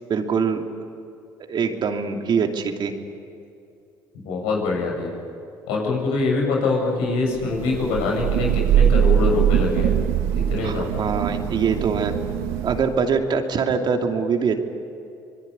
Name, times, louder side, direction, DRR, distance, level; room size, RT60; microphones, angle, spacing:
voice 1, 0.1-0.7 1.5-2.9 10.6-12.2 12.6-14.6, right 6 dB, 55° right, 4 dB, 2.7 m, -23 dB
voice 2, 4.1-5.1 5.7-9.9 10.3-11.0, left 3 dB, 80° left, 0 dB, 7.6 m, -24 dB
Thunder / Rain, 7.3-13.1, right 10 dB, 80° right, 1.3 m, -22 dB
25.5 x 21.5 x 9.8 m, 2.6 s
hypercardioid pair, 60°, 9 cm